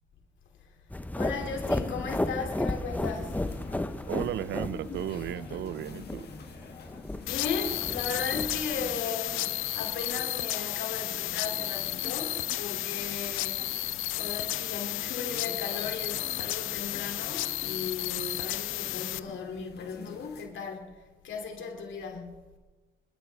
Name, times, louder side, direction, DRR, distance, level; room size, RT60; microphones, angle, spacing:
sound 1, 0.9-8.9, left 1 dB, 10° left, 0.8 m, -34 dB
voice 1, 1.2-3.4 7.2-13.7 14.2-21.0 21.2-22.5, left 5 dB, 70° left, 2.6 m, -36 dB
sound 2, 2.9-20.5, left 6 dB, 55° left, 2.0 m, -47 dB
voice 2, 4.1-6.3, right 12 dB, 65° right, 0.5 m, -34 dB
sound 3, 7.3-19.2, left 16 dB, 90° left, 0.5 m, -33 dB
25.5 x 13.0 x 3.4 m
cardioid pair, 90°, 20 cm